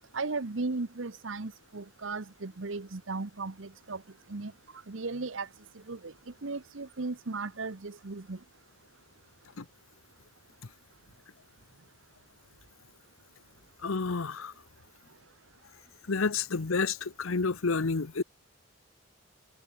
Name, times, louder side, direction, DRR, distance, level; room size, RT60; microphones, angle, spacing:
voice 1, 0.1-4.0 4.3-4.5 4.9-5.5 5.9-6.1 6.4-8.4, right 3 dB, 75° right, 1.0 m, -36 dB
voice 2, 13.8-14.5 16.1-18.2, left 4 dB, 90° left, 0.9 m, -29 dB
head